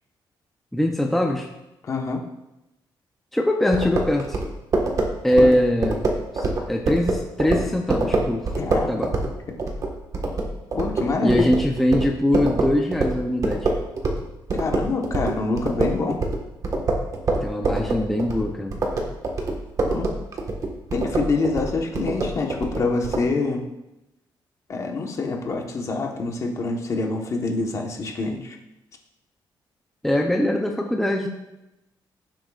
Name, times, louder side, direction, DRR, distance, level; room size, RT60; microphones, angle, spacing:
voice 1, 0.7-1.5 3.3-4.4 5.2-6.0 6.3-8.5 8.9-9.1 11.2-13.7 17.4-18.8 30.0-31.3, left 1 dB, 5° left, 1 dB, 0.6 m, -22 dB
voice 2, 1.8-2.2 5.4-5.5 8.6-8.9 10.7-11.5 14.5-16.2 19.9-20.1 20.9-23.6 24.7-28.6, left 3 dB, 40° left, 2 dB, 1.2 m, -26 dB
sound 1, 3.7-14.2 14.5-23.2, right 2 dB, 40° right, 1.5 m, -25 dB
16.0 x 7.6 x 2.5 m, 0.94 s
cardioid pair, 160°, 8 cm